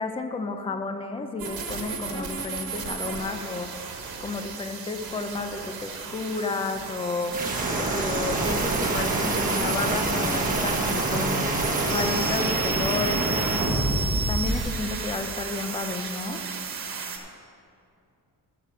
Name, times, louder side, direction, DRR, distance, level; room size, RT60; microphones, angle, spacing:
voice 1, 0.0-3.7 4.2-11.5 11.8-13.8 14.3-16.4, left 3 dB, 15° left, 7 dB, 0.5 m, -32 dB
sound 1, 1.4-17.2, right 5 dB, 80° right, 1.3 m, -34 dB
sound 2, 7.3-14.6, right 2 dB, 25° right, 1.4 m, -26 dB
13.0 x 6.8 x 5.0 m, 2.6 s
wide cardioid pair, 175°, 36 cm